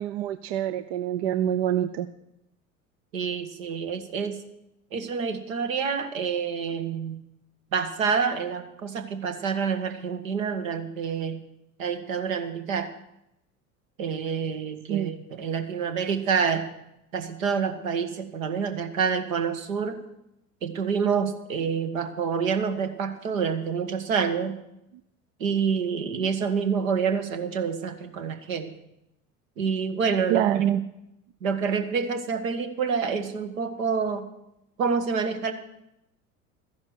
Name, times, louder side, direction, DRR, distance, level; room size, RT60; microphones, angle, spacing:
voice 1, 0.0-2.1 14.9-15.1 30.3-30.8, right 11 dB, 45° right, 12 dB, 0.7 m, -25 dB
voice 2, 3.1-4.4 4.9-7.2 7.7-11.4 11.8-12.9 14.0-16.7 17.1-20.0 20.6-24.5 25.4-28.7 29.6-30.6 31.4-34.3 34.8-35.5, right 6 dB, 65° right, 7 dB, 1.8 m, -27 dB
14.0 x 10.5 x 6.5 m, 0.84 s
figure-of-eight pair, 75°, 43 cm